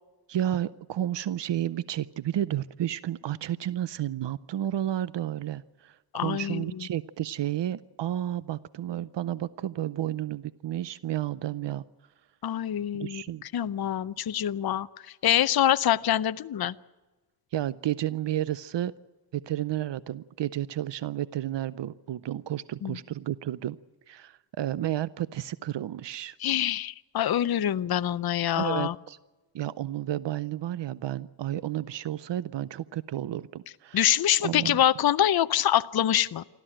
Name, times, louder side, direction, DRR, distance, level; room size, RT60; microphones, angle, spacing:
voice 1, 0.3-11.8 12.9-13.4 17.5-18.9 19.3-23.8 24.1-26.4 28.6-29.2 29.5-34.1 34.4-34.8, right 12 dB, 90° right, 17 dB, 0.6 m, -31 dB
voice 2, 6.1-6.6 12.4-13.2 13.5-14.9 15.2-16.7 22.8-23.0 26.4-28.9 33.9-36.4, left 11 dB, 60° left, 14 dB, 0.6 m, -25 dB
28.0 x 13.5 x 8.8 m, 1.2 s
wide cardioid pair, 115°, 42 cm